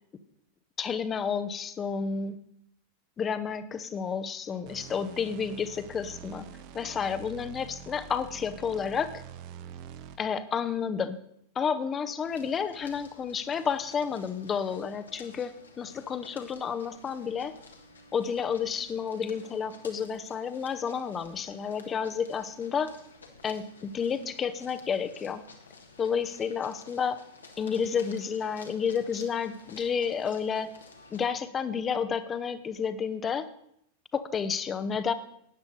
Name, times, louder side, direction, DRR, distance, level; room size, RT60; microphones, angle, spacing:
voice 1, 0.8-2.4 3.2-6.5 6.7-9.2 10.2-11.2 11.5-17.5 18.1-22.9 23.4-25.4 26.0-27.2 27.6-30.7 31.1-33.5 34.1-35.1, left 6 dB, 25° left, 12 dB, 0.8 m, -31 dB
sound 1, 4.7-10.4, right 8 dB, 45° right, 0.9 m, -46 dB
sound 2, 12.2-31.3, left 3 dB, 75° left, 1.6 m, -52 dB
13.0 x 9.6 x 4.1 m, 0.73 s
figure-of-eight pair, 90°, 0 cm